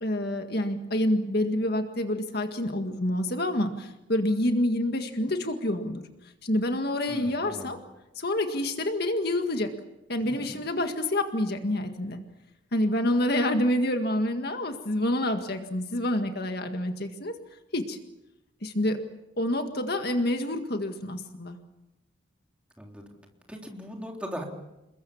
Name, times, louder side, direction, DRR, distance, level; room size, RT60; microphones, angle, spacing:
voice 1, 0.0-6.0 6.4-7.8 8.2-9.7 10.1-12.2 12.7-17.4 17.7-18.0 18.6-19.0 19.4-21.6, left 1 dB, 50° left, 6 dB, 1.9 m, -27 dB
voice 2, 7.1-7.8 10.4-10.5 22.8-23.0 23.5-24.4, equal, 5° right, 1 dB, 3.5 m, -39 dB
28.5 x 22.0 x 7.2 m, 0.93 s
head